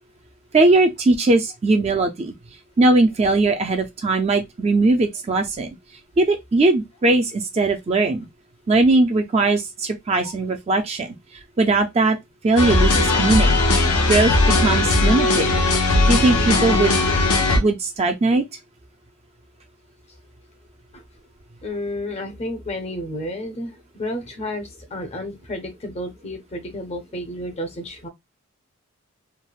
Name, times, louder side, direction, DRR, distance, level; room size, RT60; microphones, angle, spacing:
voice 1, 0.5-2.3 2.8-5.7 6.2-8.3 8.7-11.1 11.6-12.2 12.4-13.6 14.1-14.3 14.6-15.5 16.1-17.0 17.6-18.4, right 2 dB, 30° right, 0.3 m, -19 dB
sound 1, 12.6-17.6, left 2 dB, 85° left, 0.7 m, -18 dB
voice 2, 21.6-28.1, left 1 dB, 30° left, 0.5 m, -31 dB
3.2 x 2.0 x 2.3 m
head